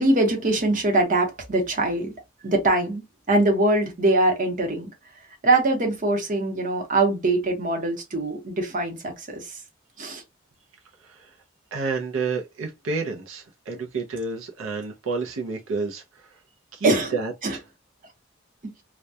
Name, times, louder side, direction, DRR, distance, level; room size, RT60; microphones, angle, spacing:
voice 1, 0.0-2.1 2.4-4.9 5.4-9.6 10.0-10.2 16.8-17.1 17.4-17.6, right 2 dB, 40° right, 0.8 m, -22 dB
voice 2, 11.0-11.4 11.7-16.4 16.7-17.6, right 4 dB, 75° right, 0.5 m, -30 dB
2.2 x 2.1 x 2.6 m
head